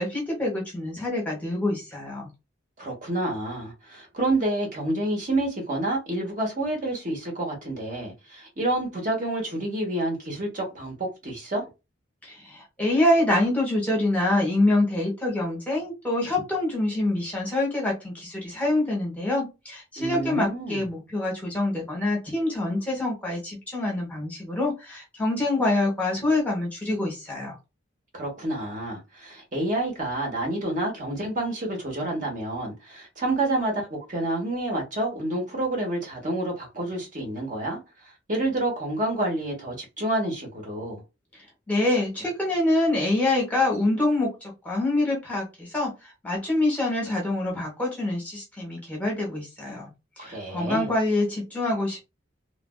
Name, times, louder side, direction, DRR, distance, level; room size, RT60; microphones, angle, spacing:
voice 1, 0.0-2.3 12.2-27.5 41.7-45.9 46.2-49.9 50.2-52.1, left 2 dB, 5° left, 0.9 m, -25 dB
voice 2, 2.8-11.6 20.0-20.8 28.1-41.0 50.2-50.9, right 1 dB, 40° right, 1.0 m, -29 dB
3.1 x 2.5 x 2.2 m
head